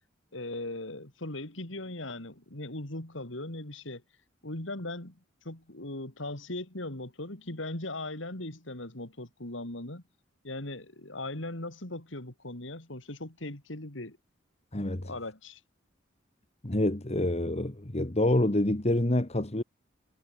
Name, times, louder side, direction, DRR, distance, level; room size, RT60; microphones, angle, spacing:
voice 1, 0.3-4.0 4.4-5.2 5.4-10.0 10.4-14.2 15.0-15.6, left 2 dB, 70° left, 3.7 m, -39 dB
voice 2, 14.7-15.1 16.6-19.6, left 1 dB, 35° left, 1.7 m, -27 dB
head